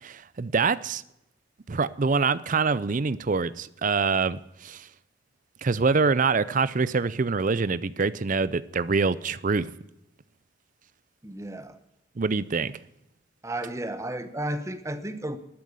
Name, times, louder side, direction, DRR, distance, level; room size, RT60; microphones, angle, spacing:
voice 1, 0.0-1.0 1.7-4.9 5.6-9.7 12.2-12.7, right 4 dB, 40° right, 17 dB, 0.5 m, -25 dB
voice 2, 11.2-11.8 13.4-15.4, right 1 dB, 15° right, 10 dB, 0.9 m, -33 dB
12.5 x 9.4 x 8.3 m, 0.86 s
head